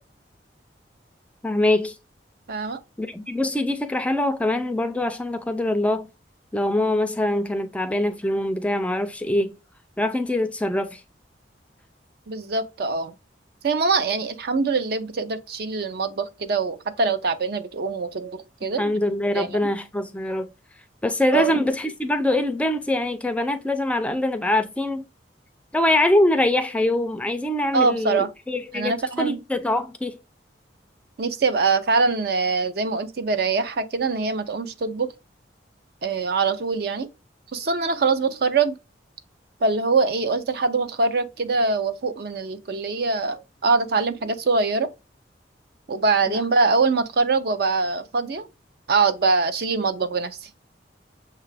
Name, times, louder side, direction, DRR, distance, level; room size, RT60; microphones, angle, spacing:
voice 1, 1.4-1.9 3.0-6.1 6.5-9.6 10.0-11.0 18.8-20.5 21.0-25.0 25.7-30.2 46.3-46.4, left 1 dB, 5° left, 0.3 m, -23 dB
voice 2, 2.5-2.8 12.3-13.1 13.6-18.9 19.4-19.7 21.3-21.5 27.7-28.3 28.7-29.4 31.2-35.1 36.0-37.1 37.5-38.7 39.6-44.9 45.9-48.5 48.9-50.5, right 4 dB, 60° right, 0.5 m, -23 dB
6.5 x 2.4 x 3.2 m
head